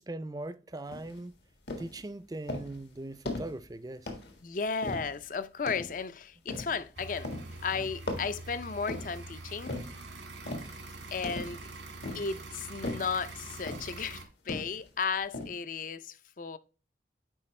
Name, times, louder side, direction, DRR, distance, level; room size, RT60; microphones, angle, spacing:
voice 1, 0.0-1.4 1.8-4.1 7.7-7.9, right 2 dB, 20° right, 0.4 m, -40 dB
sound 1, 0.9-1.2 1.7-2.0 2.5-2.8 3.3-3.6 4.1-4.4 4.8-5.2 5.7-6.0 6.5-6.8 7.2-7.6 8.1-9.2 9.7-10.0 10.5-10.8 11.2-11.6 12.0-12.4 12.8-13.2 13.7-14.0 14.5-14.9 15.3-15.5, left 2 dB, 75° left, 1.7 m, -38 dB
voice 2, 4.4-7.3 7.6-9.8 11.1-11.6 12.1-16.6, left 5 dB, 45° left, 0.5 m, -34 dB
sound 2, 7.0-14.2, right 2 dB, 90° right, 1.8 m, -45 dB
9.9 x 4.4 x 3.2 m
head